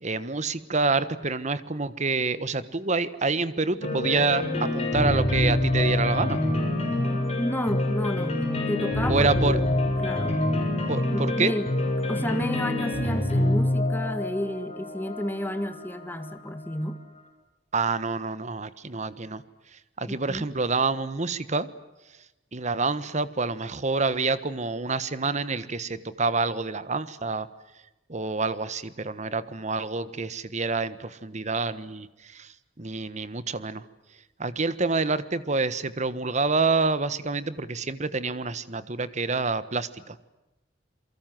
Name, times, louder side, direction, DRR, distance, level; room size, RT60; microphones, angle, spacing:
voice 1, 0.0-6.4 9.1-9.6 10.9-11.5 17.7-19.4 20.0-21.7 22.5-27.5 28.1-32.1 32.3-32.5 32.8-33.8 34.4-40.2, right 3 dB, 40° right, 14 dB, 1.4 m, -27 dB
sound 1, 3.8-16.7, left 1 dB, 35° left, 7.0 m, -26 dB
voice 2, 7.4-8.4 8.7-10.8 11.1-11.7 12.1-17.0 20.1-20.5, equal, 10° left, 10 dB, 1.9 m, -31 dB
28.5 x 23.5 x 7.7 m, 0.99 s
head